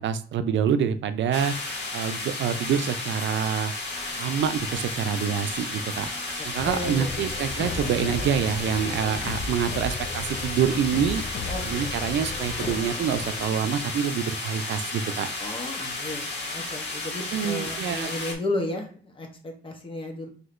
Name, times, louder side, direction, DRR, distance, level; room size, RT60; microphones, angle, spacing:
voice 1, 0.0-1.5 1.9-3.7 4.2-6.1 6.4-11.2 11.6-15.3 17.3-18.1, right 8 dB, 90° right, 10 dB, 0.5 m, -26 dB
sound 1, 1.3-18.3, left 2 dB, 70° left, 1.4 m, -33 dB
sound 2, 3.9-10.1, right 1 dB, 5° right, 0.5 m, -48 dB
sound 3, 6.6-14.2, left 4 dB, 55° left, 0.5 m, -35 dB
voice 2, 6.6-7.3 11.5-11.9 15.4-20.3, left 1 dB, 30° left, 3 dB, 0.9 m, -33 dB
6.0 x 2.8 x 2.5 m, 0.42 s
wide cardioid pair, 165°, 19 cm